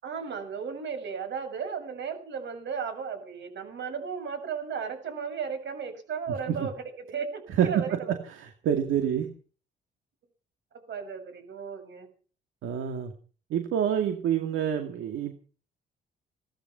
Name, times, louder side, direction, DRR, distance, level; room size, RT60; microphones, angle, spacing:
voice 1, 0.0-8.1 10.9-12.1, right 6 dB, 65° right, 7 dB, 6.9 m, -35 dB
voice 2, 7.6-9.3 12.6-13.1 13.5-15.3, right 9 dB, 85° right, 6 dB, 2.3 m, -27 dB
18.5 x 13.5 x 5.8 m, 0.40 s
cardioid pair, 90°, 20 cm